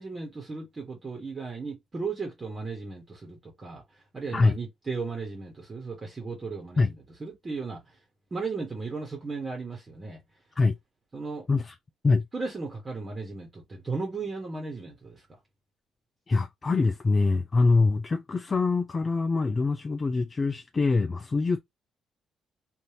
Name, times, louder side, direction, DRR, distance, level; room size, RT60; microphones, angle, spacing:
voice 1, 0.0-6.9 7.2-8.0 8.3-10.2 11.1-11.4 12.3-15.3, right 4 dB, 30° right, 1.2 m, -36 dB
voice 2, 16.3-21.6, left 3 dB, 30° left, 0.4 m, -24 dB
3.3 x 2.6 x 2.8 m
cardioid pair, 90°, 0 cm